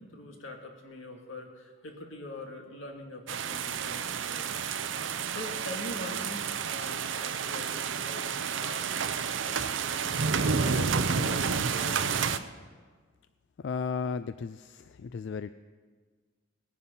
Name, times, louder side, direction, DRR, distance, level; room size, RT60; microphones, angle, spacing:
voice 1, 0.0-4.6 4.9-11.5 11.7-12.3, left 1 dB, 90° left, 2 dB, 2.1 m, -43 dB
sound 1, 3.3-12.4, right 6 dB, 75° right, 0.6 m, -30 dB
voice 2, 13.6-15.5, left 5 dB, 65° left, 13 dB, 0.3 m, -34 dB
19.0 x 10.0 x 5.6 m, 1.5 s
head